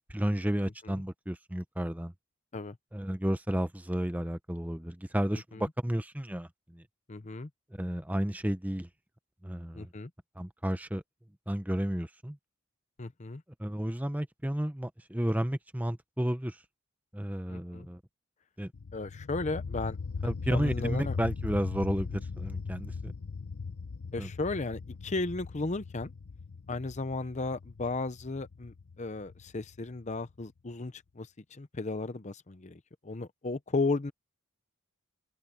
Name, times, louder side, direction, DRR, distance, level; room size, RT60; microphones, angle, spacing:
voice 1, 0.1-2.1 2.9-6.5 6.7-6.8 7.8-8.9 9.4-9.9 10.4-11.0 11.5-12.4 13.6-16.5 17.1-18.0 18.6-18.7 20.2-23.1 24.2-24.3, equal, 5° right, 0.9 m, -32 dB
voice 2, 5.3-5.7 7.1-7.5 9.7-10.1 13.0-13.4 17.5-17.9 18.9-20.0 20.2-21.2 24.1-26.1 26.7-34.1, left 3 dB, 35° left, 0.7 m, -35 dB
sound 1, 18.7-30.3, left 4 dB, 90° left, 0.7 m, -39 dB
head